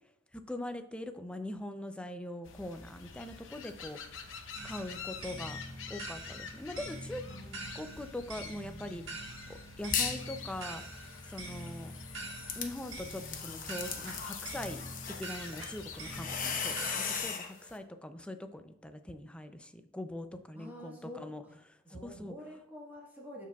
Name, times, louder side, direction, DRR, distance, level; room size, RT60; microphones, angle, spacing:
voice 1, 0.3-5.6 5.9-7.2 7.7-10.8 11.3-11.9 12.6-14.8 15.1-21.4 21.7-22.3, left 1 dB, 5° left, 8 dB, 0.4 m, -42 dB
sound 1, 2.4-16.4, left 5 dB, 75° left, 0.8 m, -48 dB
sound 2, 4.5-17.2, right 2 dB, 85° right, 1.6 m, -45 dB
voice 2, 7.2-7.9 20.5-21.6 21.8-23.5, left 1 dB, 10° right, -4 dB, 1.3 m, -48 dB
sound 3, 9.9-10.3 10.7-17.5, left 6 dB, 45° left, 0.9 m, -38 dB
13.0 x 4.7 x 2.3 m, 0.79 s
head